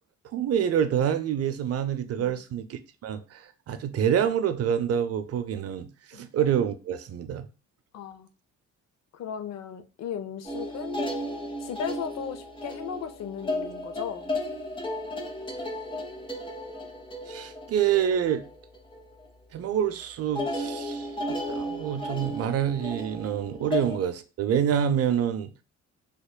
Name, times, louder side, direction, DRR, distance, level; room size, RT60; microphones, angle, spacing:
voice 1, 0.3-7.4 17.3-18.4 19.5-25.5, right 9 dB, 55° right, 0.5 m, -27 dB
voice 2, 7.9-8.3 9.1-11.1 11.6-14.3 23.6-23.8, left 7 dB, 60° left, 0.5 m, -36 dB
sound 1, 10.4-19.3 19.6-19.9 20.3-24.0, left 1 dB, 15° left, 0.8 m, -34 dB
4.1 x 2.9 x 2.2 m
cardioid pair, 90°, 30 cm